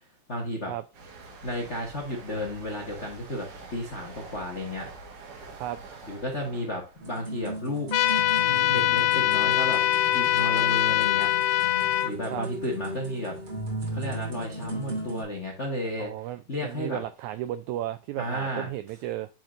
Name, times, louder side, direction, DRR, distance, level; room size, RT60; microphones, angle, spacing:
voice 1, 0.3-0.7 1.4-4.9 6.1-7.9 8.7-9.8 10.1-11.3 12.0-13.4 13.9-16.1 16.5-17.0 18.2-18.7, left 1 dB, 60° left, -1 dB, 0.7 m, -33 dB
sound 1, 0.9-8.4 8.7-9.0, right 3 dB, 70° right, 3.2 m, -46 dB
sound 2, 7.0-15.2, right 1 dB, 35° right, 2.7 m, -36 dB
sound 3, 7.9-12.1, left 14 dB, 85° left, 2.4 m, -23 dB
voice 2, 16.0-19.3, right 13 dB, 85° right, 11 dB, 1.6 m, -34 dB
9.1 x 4.6 x 2.5 m, 0.31 s
omnidirectional pair, 3.9 m